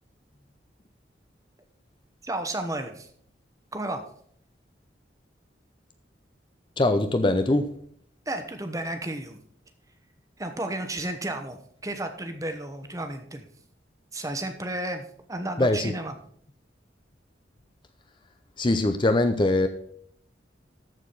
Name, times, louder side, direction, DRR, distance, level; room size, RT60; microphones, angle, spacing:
voice 1, 2.2-3.1 3.7-4.0 8.3-9.4 10.4-13.4 14.1-16.1, right 1 dB, 20° right, 7 dB, 1.1 m, -33 dB
voice 2, 6.8-7.7 15.6-15.9 18.6-19.7, left 2 dB, 25° left, 8 dB, 0.6 m, -22 dB
13.5 x 4.8 x 5.5 m, 0.63 s
head